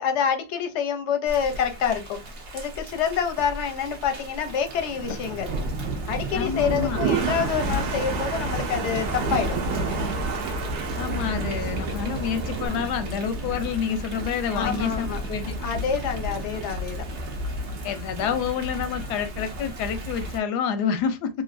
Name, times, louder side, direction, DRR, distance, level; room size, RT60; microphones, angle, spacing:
voice 1, 0.0-2.2 2.5-5.5 6.1-9.6 14.5-15.2 15.6-17.0, left 7 dB, 60° left, 0.7 m, -27 dB
Thunder / Rain, 1.3-20.4, right 1 dB, 60° right, 0.8 m, -32 dB
voice 2, 6.3-7.0 11.0-15.5 17.8-21.3, left 7 dB, 90° left, 1.2 m, -28 dB
Toilet flush, 6.5-12.7, right 5 dB, 80° right, 1.2 m, -31 dB
3.0 x 2.5 x 2.5 m
omnidirectional pair, 1.7 m